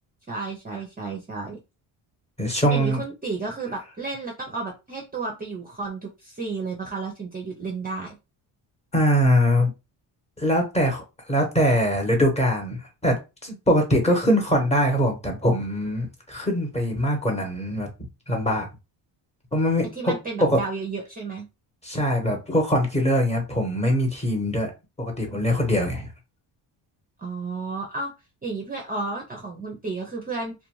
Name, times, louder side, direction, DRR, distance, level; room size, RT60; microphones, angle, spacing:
voice 1, 0.3-1.6 2.7-8.2 19.9-21.5 27.2-28.1 28.4-30.5, right 3 dB, 20° right, 0.5 m, -32 dB
voice 2, 2.4-3.0 8.9-9.7 10.4-11.0 11.3-13.2 13.4-17.9 18.3-18.7 19.5-20.1 20.4-20.6 21.8-24.7 25.0-26.1, equal, 15° left, 0.9 m, -22 dB
2.4 x 2.3 x 3.0 m
cardioid pair, 105°, 49 cm